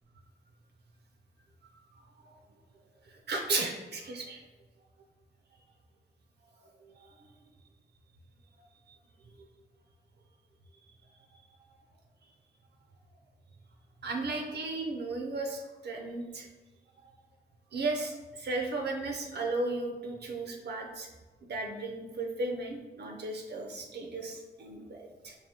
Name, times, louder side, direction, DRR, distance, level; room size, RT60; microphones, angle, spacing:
voice 1, 3.3-4.4 14.0-16.5 17.7-21.1 21.4-25.3, right 2 dB, 70° right, 3 dB, 0.5 m, -35 dB
4.8 x 2.6 x 2.8 m, 1.1 s
wide cardioid pair, 160°, 18 cm